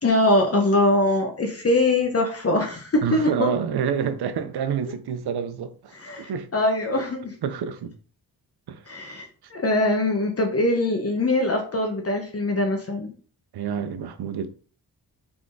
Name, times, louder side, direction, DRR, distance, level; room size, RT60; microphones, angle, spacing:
voice 1, 0.0-3.5 5.9-7.3 8.9-13.1, left 1 dB, 35° left, 0.9 m, -22 dB
voice 2, 3.0-6.5 7.4-7.9 8.7-8.8 13.5-14.5, right 7 dB, 75° right, 0.7 m, -28 dB
3.6 x 3.6 x 3.8 m
cardioid pair, 60°, 39 cm